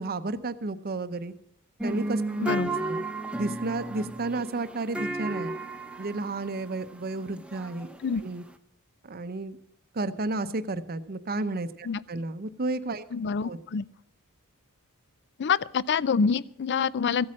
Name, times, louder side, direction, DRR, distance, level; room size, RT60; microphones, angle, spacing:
voice 1, 0.0-1.3 1.8-2.2 2.9-3.0 3.4-5.5 6.0-7.9 8.2-8.4 9.0-9.6 9.9-13.0 13.4-13.6, right 2 dB, 45° right, 11 dB, 0.7 m, -32 dB
sound 1, 1.8-8.5, right 2 dB, 5° right, 0.7 m, -34 dB
voice 2, 2.4-2.7 8.0-8.2 11.8-12.0 13.1-13.9 15.4-17.3, left 6 dB, 50° left, 19 dB, 0.4 m, -26 dB
15.0 x 8.6 x 6.2 m, 0.76 s
head